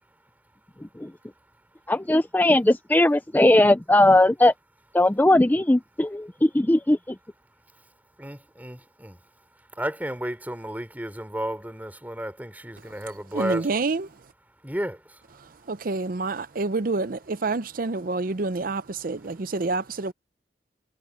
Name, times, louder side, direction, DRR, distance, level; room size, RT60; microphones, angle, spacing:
voice 1, 1.9-4.5 4.9-7.0, left 1 dB, 10° left, 0.5 m, -19 dB
voice 2, 8.2-9.2 9.8-13.7 14.6-15.0, right 1 dB, 10° right, 3.5 m, -32 dB
voice 3, 13.3-14.0 15.7-20.1, right 3 dB, 50° right, 0.6 m, -27 dB
head